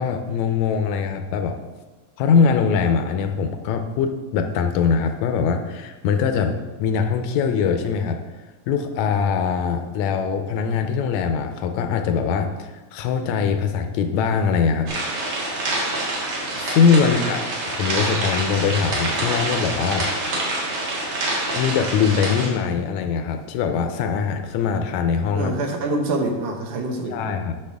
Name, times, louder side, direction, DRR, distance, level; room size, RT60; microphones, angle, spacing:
voice 1, 0.0-1.6 2.2-8.2 8.7-15.2 16.6-20.1 21.5-25.5 27.1-27.5, left 6 dB, 80° left, 7 dB, 1.9 m, -22 dB
sound 1, 14.9-22.5, right 2 dB, 70° right, 3.2 m, -26 dB
voice 2, 17.0-17.3 25.3-27.4, right 2 dB, 90° right, 3 dB, 2.5 m, -26 dB
10.0 x 6.3 x 3.6 m, 1.2 s
omnidirectional pair, 3.4 m